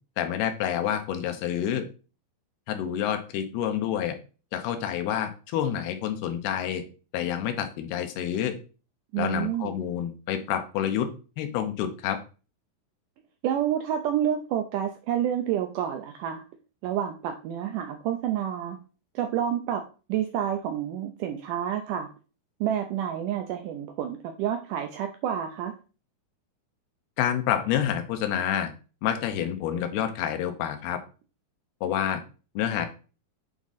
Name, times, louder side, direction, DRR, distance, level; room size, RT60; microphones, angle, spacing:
voice 1, 0.2-1.9 2.7-4.2 4.5-6.8 7.1-8.6 9.2-12.2 27.2-28.7 29.0-31.0 31.8-32.2 32.6-32.9, left 10 dB, 85° left, 7 dB, 2.9 m, -28 dB
voice 2, 9.1-9.7 13.4-16.4 16.8-18.8 19.2-19.8 20.1-22.1 22.6-25.7, right 10 dB, 85° right, 6 dB, 1.8 m, -29 dB
8.7 x 3.6 x 4.0 m, 0.35 s
omnidirectional pair, 4.5 m